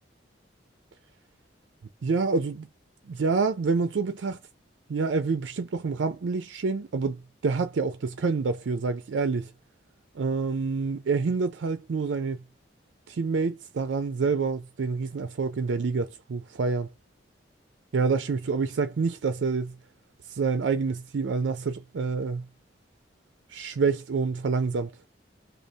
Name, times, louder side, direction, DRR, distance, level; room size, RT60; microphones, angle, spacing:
voice 1, 2.0-2.7 3.1-4.4 4.9-9.5 10.2-12.4 13.1-16.9 17.9-19.7 20.3-22.5 23.5-24.9, right 4 dB, 80° right, 0.4 m, -27 dB
5.1 x 2.0 x 2.8 m
head